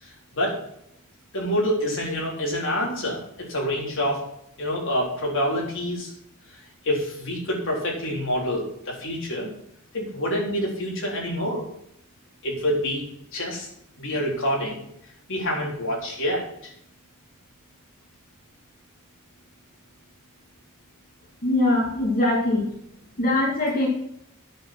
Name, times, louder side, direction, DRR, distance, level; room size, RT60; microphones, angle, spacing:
voice 1, 0.0-0.6 1.3-4.2 4.6-6.1 6.8-9.5 9.9-11.6 12.4-13.0 13.3-13.7 14.0-14.9 15.3-16.7, equal, 65° left, -2 dB, 3.8 m, -27 dB
voice 2, 21.4-22.7 23.2-23.9, left 2 dB, 45° left, -4 dB, 2.5 m, -22 dB
9.2 x 7.3 x 6.0 m, 0.74 s
head